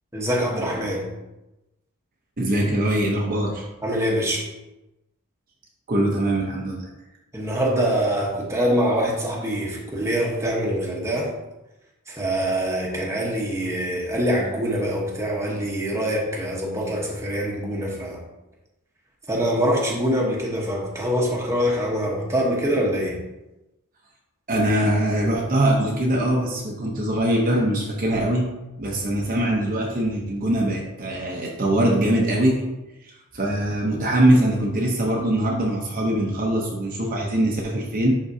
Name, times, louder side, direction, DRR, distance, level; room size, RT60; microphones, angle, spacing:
voice 1, 0.1-1.1 3.8-4.4 7.3-11.3 12.1-18.2 19.3-23.2, equal, 15° right, -3 dB, 1.1 m, -24 dB
voice 2, 2.4-3.6 5.9-6.9 24.5-28.5 28.8-32.7 33.0-38.2, right 1 dB, 40° right, -1 dB, 0.8 m, -22 dB
11.0 x 3.8 x 2.8 m, 0.98 s
head